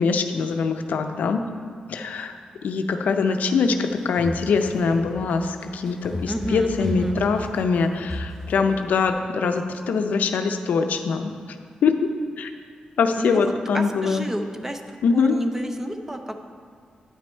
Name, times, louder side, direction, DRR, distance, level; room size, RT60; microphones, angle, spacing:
voice 1, 0.0-1.4 1.9-11.6 11.8-11.9 12.4-12.5 13.0-14.3 15.0-15.4, left 5 dB, 85° left, 7 dB, 0.5 m, -23 dB
sound 1, 3.8-9.1, left 1 dB, 5° left, 1.4 m, -34 dB
voice 2, 6.3-7.2 13.2-14.8 15.1-16.4, equal, 15° right, 5 dB, 0.6 m, -30 dB
9.3 x 6.0 x 4.4 m, 2.1 s
wide cardioid pair, 110°, 3 cm